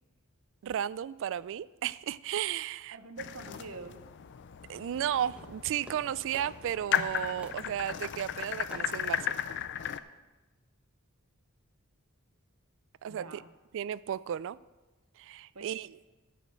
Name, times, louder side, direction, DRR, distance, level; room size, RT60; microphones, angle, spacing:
voice 1, 0.6-3.0 4.7-9.4 13.0-13.4 13.7-14.6 15.2-16.0, right 10 dB, 60° right, 0.3 m, -34 dB
voice 2, 2.9-4.0 13.1-13.5 15.5-15.9, right 3 dB, 75° right, 0.8 m, -45 dB
sound 1, 3.2-10.0, left 9 dB, 55° left, 0.4 m, -36 dB
Fireworks, 5.2-10.3, right 1 dB, 5° right, 1.0 m, -55 dB
14.0 x 5.1 x 6.4 m
head